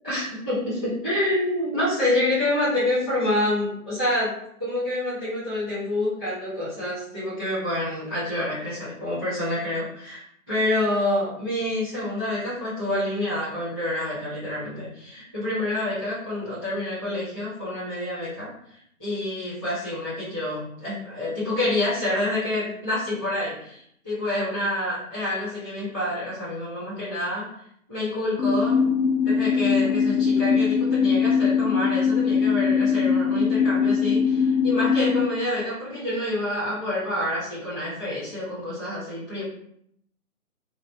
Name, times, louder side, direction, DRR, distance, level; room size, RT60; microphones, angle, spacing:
voice 1, 0.0-4.3 4.6-10.2 10.5-27.5 27.9-28.8 29.2-39.4, left 1 dB, 5° left, -16 dB, 0.9 m, -27 dB
sound 1, 28.4-35.3, left 6 dB, 65° left, 0.6 m, -21 dB
2.5 x 2.1 x 2.8 m, 0.71 s
hypercardioid pair, 175°, 43 cm